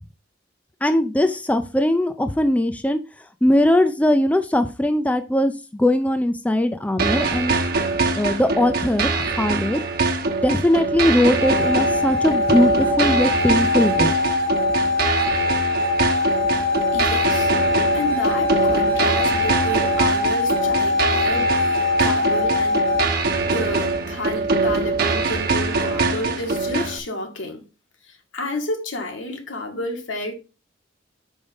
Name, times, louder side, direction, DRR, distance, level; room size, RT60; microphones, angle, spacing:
voice 1, 0.8-3.0 3.4-7.5 8.1-9.8 10.4-14.1, left 1 dB, 5° left, 0.4 m, -20 dB
sound 1, 7.0-27.0, right 3 dB, 50° right, 1.1 m, -23 dB
sound 2, 11.4-23.1, left 3 dB, 50° left, 1.3 m, -22 dB
voice 2, 16.9-23.1 23.5-27.6 28.1-30.3, left 1 dB, 80° left, 1.8 m, -31 dB
5.5 x 5.0 x 5.1 m
head